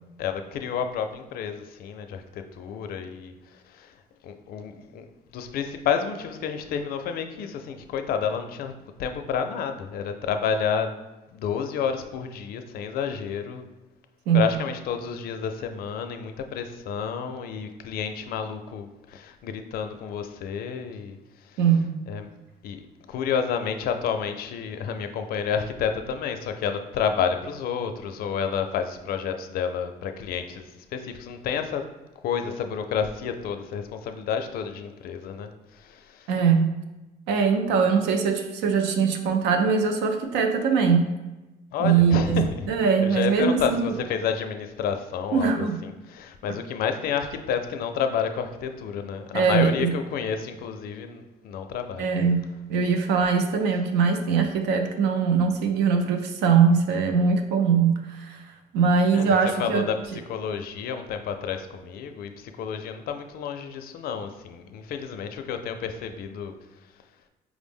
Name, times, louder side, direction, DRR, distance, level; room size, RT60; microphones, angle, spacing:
voice 1, 0.2-3.3 3.7-3.9 4.2-5.1 5.3-8.7 9.0-11.0 11.3-13.6 14.3-21.2 22.1-22.3 22.6-22.8 23.1-31.9 32.2-36.3 41.7-42.6 43.0-52.0 59.1-60.0 60.3-66.5, left 7 dB, 65° left, 7 dB, 0.4 m, -30 dB
voice 2, 21.6-21.9 36.3-36.7 37.3-41.1 41.8-44.0 45.3-45.8 49.3-49.9 52.0-52.4 52.7-58.4 58.7-59.9, right 6 dB, 90° right, 5 dB, 0.5 m, -22 dB
4.7 x 2.0 x 3.5 m, 1.1 s
cardioid pair, 110°, 17 cm